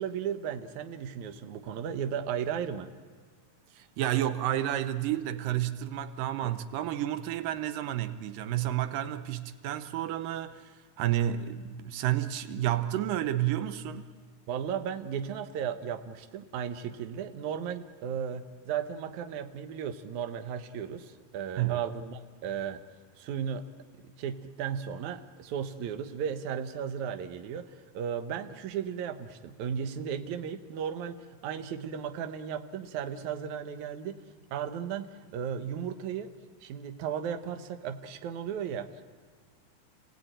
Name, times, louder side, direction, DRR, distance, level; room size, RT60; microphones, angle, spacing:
voice 1, 0.0-2.9 6.4-6.5 14.5-22.8 23.2-23.6 24.2-34.2 34.5-36.3 36.6-39.1, right 8 dB, 70° right, 2.3 m, -35 dB
voice 2, 3.7-14.1 21.6-21.9, right 12 dB, 90° right, 2.5 m, -31 dB
29.0 x 18.0 x 8.9 m
omnidirectional pair, 3.8 m